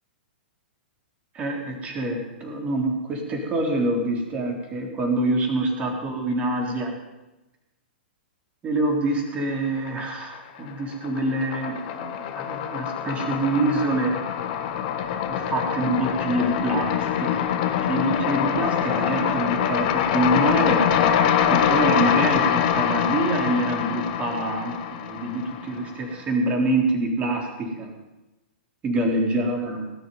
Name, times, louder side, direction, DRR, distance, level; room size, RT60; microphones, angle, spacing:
voice 1, 1.3-7.0 8.6-14.2 15.3-20.9 21.5-27.9 28.8-29.9, right 2 dB, 25° right, 1 dB, 3.7 m, -26 dB
sound 1, 9.6-10.4 10.7-25.9, left 9 dB, 45° left, 1.6 m, -24 dB
18.5 x 7.3 x 9.3 m, 1.0 s
figure-of-eight pair, 110°, 6 cm